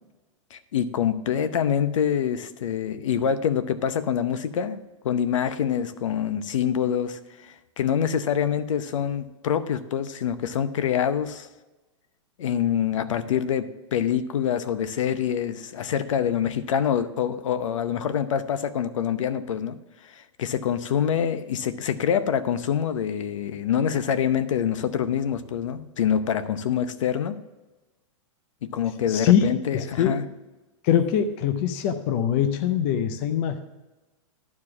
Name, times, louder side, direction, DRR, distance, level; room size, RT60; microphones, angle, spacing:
voice 1, 0.5-11.5 12.4-19.8 20.0-27.4 28.6-30.2, left 8 dB, 70° left, 12 dB, 0.8 m, -26 dB
voice 2, 29.1-29.5 29.7-30.2 30.8-33.6, left 9 dB, 25° left, 9 dB, 0.4 m, -23 dB
11.5 x 4.8 x 6.0 m, 1.1 s
supercardioid pair, 175°, 17 cm